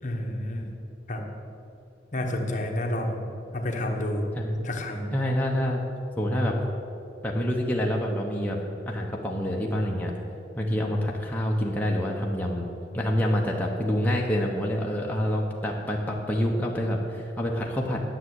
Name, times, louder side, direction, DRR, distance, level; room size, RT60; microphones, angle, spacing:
voice 1, 0.0-0.7 1.1-1.3 2.1-3.2 3.5-4.3 4.6-5.1, left 1 dB, 45° left, 2 dB, 1.2 m, -29 dB
voice 2, 5.1-5.8 6.2-6.5 7.2-8.6 8.8-10.1 10.6-12.7 12.9-18.0, equal, 10° left, -2 dB, 0.9 m, -27 dB
10.0 x 7.0 x 8.0 m, 2.8 s
head